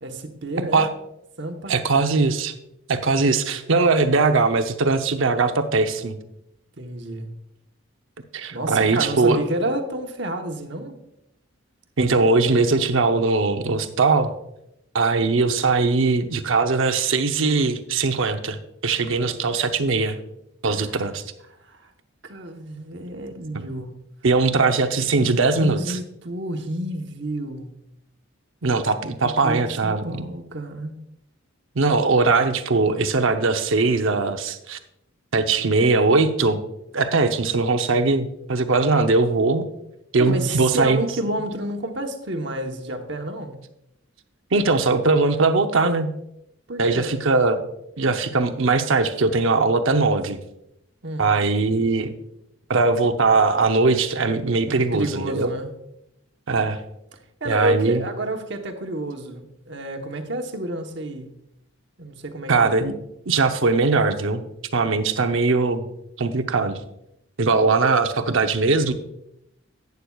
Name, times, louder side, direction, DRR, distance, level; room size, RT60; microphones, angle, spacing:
voice 1, 0.0-0.9 1.4-1.7 6.8-7.3 8.5-11.0 19.1-19.3 20.6-21.0 21.6-21.9 22.2-24.0 25.5-27.7 29.2-31.0 40.2-43.6 46.7-47.2 51.0-51.3 54.7-55.7 57.4-61.3 62.0-62.5, right 1 dB, 55° right, 5 dB, 1.1 m, -30 dB
voice 2, 1.7-2.5 2.9-6.1 8.3-9.4 12.0-14.3 14.9-20.2 20.6-21.2 24.2-26.0 28.6-30.3 31.8-34.8 35.3-36.6 36.9-39.7 40.1-41.0 44.5-46.1 46.8-47.6 48.0-50.4 51.2-52.1 52.7-55.5 56.5-56.8 57.4-58.0 62.5-63.0 63.3-64.4 64.7-65.9 66.2-66.8 67.4-68.9, right 3 dB, 75° right, 8 dB, 0.7 m, -20 dB
11.5 x 9.5 x 2.4 m, 0.81 s
head